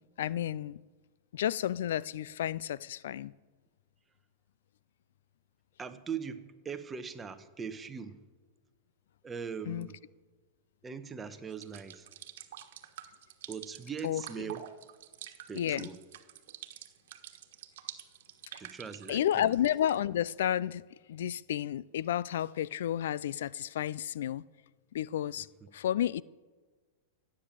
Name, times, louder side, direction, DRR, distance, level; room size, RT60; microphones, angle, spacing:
voice 1, 0.2-0.8 1.3-3.3 9.7-9.9 14.0-14.2 15.6-15.9 19.1-20.8 21.1-24.4 24.9-25.5 25.7-26.2, left 11 dB, 75° left, 0.4 m, -31 dB
voice 2, 5.8-8.2 9.2-10.0 10.8-12.1 13.5-14.6 15.5-16.0 18.6-19.5, right 6 dB, 15° right, 1.1 m, -40 dB
sound 1, 11.5-20.0, right 11 dB, 65° right, 1.4 m, -48 dB
16.0 x 8.8 x 7.5 m
hypercardioid pair, 135°, 0 cm